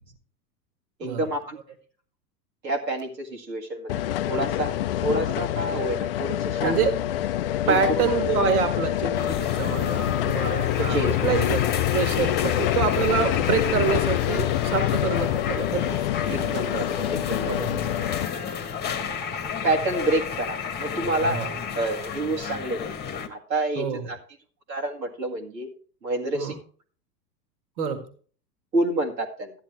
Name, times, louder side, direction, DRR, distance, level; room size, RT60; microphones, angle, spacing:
voice 1, 1.0-1.6 2.6-4.0 4.3-4.7 5.0-6.8 7.6-8.1 10.8-11.2 16.2-17.8 19.0-19.1 19.6-21.4 21.7-22.8 23.3-24.2 24.7-25.7 26.0-26.5 28.7-29.5, right 2 dB, 75° right, 1 dB, 1.9 m, -28 dB
sound 1, 3.9-18.3, left 13 dB, 40° left, 0.5 m, -26 dB
voice 2, 6.6-6.9 7.7-11.6 11.9-16.0 17.4-18.0 18.8-18.9 21.3-21.5 23.8-24.1 26.3-26.6 27.8-28.1, right 6 dB, 60° right, 8 dB, 1.9 m, -26 dB
sound 2, 9.2-23.3, left 7 dB, 20° left, 1.2 m, -32 dB
13.0 x 9.9 x 3.4 m, 0.43 s
figure-of-eight pair, 95°, 50 cm